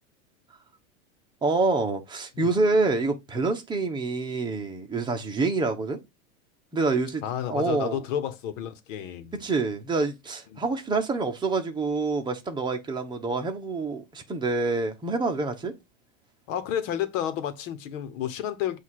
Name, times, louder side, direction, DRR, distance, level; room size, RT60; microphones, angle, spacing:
voice 1, 1.4-6.0 6.7-7.2 7.5-8.0 9.4-15.7, right 3 dB, 10° right, 1.0 m, -27 dB
voice 2, 7.2-9.4 10.5-10.6 16.5-18.8, left 10 dB, 65° left, 1.3 m, -31 dB
8.1 x 2.8 x 4.8 m
supercardioid pair, 140°, 41 cm